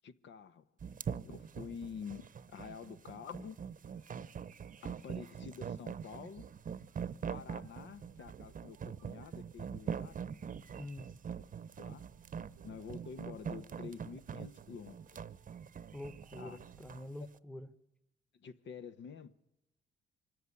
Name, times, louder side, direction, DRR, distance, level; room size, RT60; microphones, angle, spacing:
voice 1, 0.0-0.7 1.2-3.6 4.8-6.5 7.3-10.6 11.8-12.1 12.6-15.0 16.4-16.6 18.3-19.3, left 6 dB, 65° left, 1.0 m, -48 dB
sound 1, 0.8-17.1, right 7 dB, 40° right, 0.9 m, -43 dB
sound 2, 6.3-17.1, right 12 dB, 75° right, 0.9 m, -62 dB
voice 2, 10.8-11.1 15.9-17.7, left 1 dB, 5° left, 1.1 m, -46 dB
24.5 x 14.0 x 9.7 m
cardioid pair, 90°, 20 cm